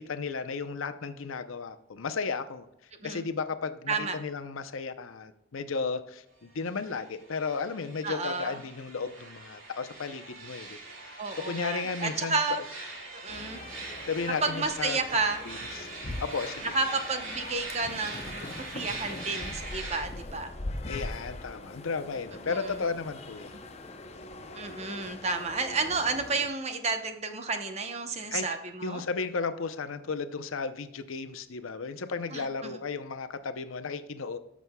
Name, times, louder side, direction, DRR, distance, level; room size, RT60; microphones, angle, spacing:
voice 1, 0.0-2.6 3.0-10.8 11.0-12.4 14.1-15.0 15.4-15.9 16.2-16.7 20.9-23.6 28.3-28.5 28.8-34.4, left 4 dB, 80° left, 10 dB, 0.6 m, -34 dB
voice 2, 3.9-4.2 8.0-8.6 11.2-12.6 13.2-13.6 14.4-15.4 16.6-20.5 22.4-22.8 24.5-29.0 32.3-32.7, right 3 dB, 30° right, 7 dB, 0.8 m, -31 dB
sound 1, 6.7-20.0, right 2 dB, 85° right, 2.5 m, -42 dB
sound 2, 13.3-26.5, left 2 dB, 30° left, 0.6 m, -42 dB
13.5 x 6.1 x 2.2 m, 0.84 s
head